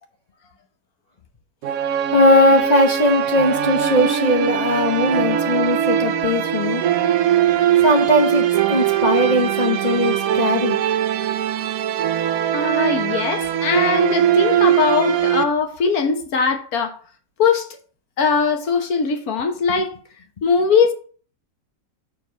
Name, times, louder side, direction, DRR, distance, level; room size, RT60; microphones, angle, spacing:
sound 1, 1.6-15.4, right 10 dB, 65° right, 0.9 m, -20 dB
voice 1, 2.1-6.8 7.8-10.8, left 1 dB, 35° left, 0.7 m, -19 dB
voice 2, 12.5-16.9 17.4-17.6 18.2-19.9 20.4-20.9, left 5 dB, 60° left, 1.5 m, -20 dB
7.0 x 4.5 x 4.5 m
omnidirectional pair, 1.9 m